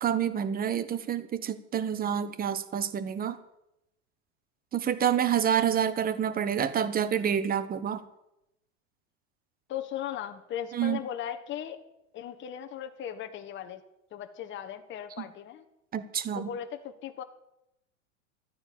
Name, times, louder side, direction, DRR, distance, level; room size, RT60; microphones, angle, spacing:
voice 1, 0.0-3.4 4.7-8.0 10.7-11.0 15.9-16.5, right 9 dB, 25° right, 14 dB, 1.2 m, -28 dB
voice 2, 9.7-11.8 12.1-13.8 14.1-15.6 16.3-17.2, left 10 dB, 30° left, 6 dB, 1.4 m, -37 dB
13.5 x 9.7 x 8.7 m, 0.84 s
hypercardioid pair, 110°, 39 cm